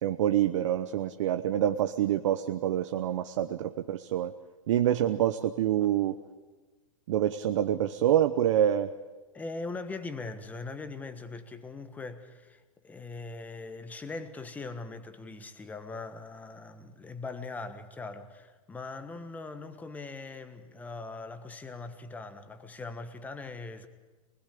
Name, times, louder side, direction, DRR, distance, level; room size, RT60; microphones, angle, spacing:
voice 1, 0.0-4.3 4.7-6.2 7.1-8.9, right 11 dB, 60° right, 1.1 m, -26 dB
voice 2, 9.3-23.9, left 3 dB, 10° left, 1.3 m, -41 dB
25.5 x 20.5 x 8.5 m
hypercardioid pair, 155°, 18 cm